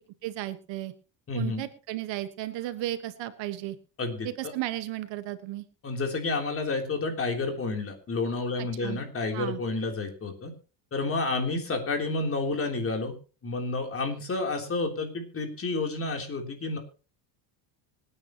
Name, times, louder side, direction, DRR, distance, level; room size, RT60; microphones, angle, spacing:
voice 1, 0.2-0.9 1.3-3.8 4.2-5.7 8.8-9.0 9.3-9.6, right 14 dB, 65° right, 11 dB, 1.6 m, -34 dB
voice 2, 1.3-1.6 4.0-4.5 5.8-10.5 10.9-13.1 13.4-16.8, left 3 dB, 30° left, 4 dB, 3.5 m, -30 dB
25.0 x 9.7 x 3.1 m, 0.34 s
cardioid pair, 140°, 47 cm